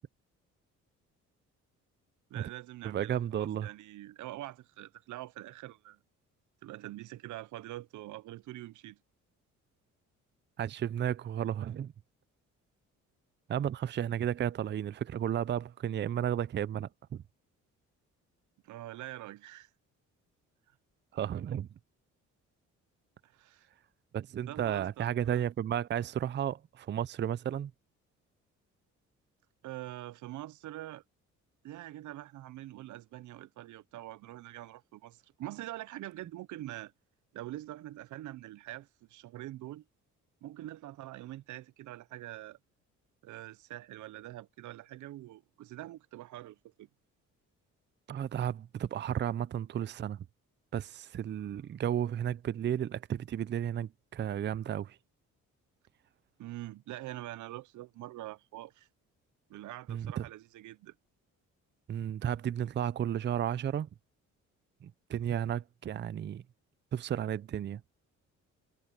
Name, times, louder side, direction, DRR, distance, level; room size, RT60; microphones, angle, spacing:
voice 1, 2.3-6.0 6.6-9.0 18.6-19.7 23.2-23.7 24.5-25.5 29.6-31.0 31.6-36.9 37.3-39.8 40.4-42.6 43.2-46.9 56.4-58.9 59.5-60.9, right 15 dB, 75° right, 0.7 m, -44 dB
voice 2, 2.8-3.7 10.6-11.9 13.5-17.2 21.1-21.7 24.1-27.7 48.1-50.2 50.7-55.0 59.9-60.3 61.9-63.9 64.8-66.4 66.9-67.8, right 10 dB, 35° right, 0.5 m, -33 dB
cardioid pair, 90°, 30 cm